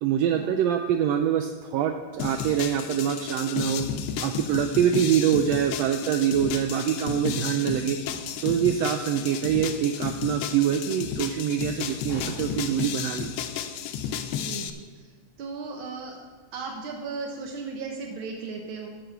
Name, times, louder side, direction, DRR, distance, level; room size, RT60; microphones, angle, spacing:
voice 1, 0.0-3.8 4.2-8.0 8.4-13.3, right 9 dB, 90° right, 6 dB, 1.4 m, -25 dB
sound 1, 2.2-14.7, left 8 dB, 80° left, 1.4 m, -33 dB
sound 2, 8.1-8.6 12.1-12.9, equal, 35° left, 2.1 m, -40 dB
voice 2, 14.3-15.1 15.4-16.2 16.5-18.9, right 4 dB, 70° right, 2 dB, 1.2 m, -36 dB
12.0 x 7.6 x 4.6 m, 1.5 s
omnidirectional pair, 3.5 m